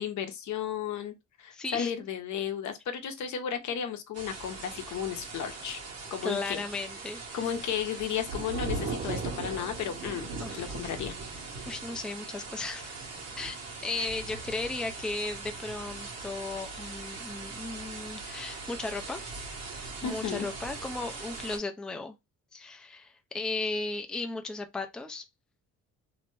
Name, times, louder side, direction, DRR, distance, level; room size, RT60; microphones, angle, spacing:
voice 1, 0.0-5.8 6.1-6.6 7.3-10.3 10.5-11.1 14.0-14.1 20.0-20.5, left 8 dB, 70° left, 0.7 m, -34 dB
voice 2, 1.5-1.9 6.2-7.4 10.4-10.7 11.7-13.0 13.4-13.6 13.8-19.3 20.0-22.2 22.5-25.2, left 3 dB, 5° left, 0.4 m, -35 dB
sound 1, 4.1-21.6, right 3 dB, 55° right, 1.1 m, -39 dB
2.6 x 2.1 x 3.1 m
cardioid pair, 90°, 30 cm